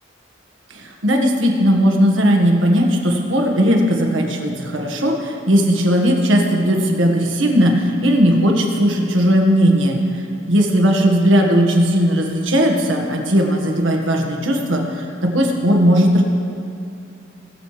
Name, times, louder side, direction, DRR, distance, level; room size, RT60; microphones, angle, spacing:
voice 1, 0.7-10.0 10.5-16.2, equal, 80° right, 1 dB, 1.6 m, -17 dB
21.0 x 7.7 x 3.3 m, 2.6 s
head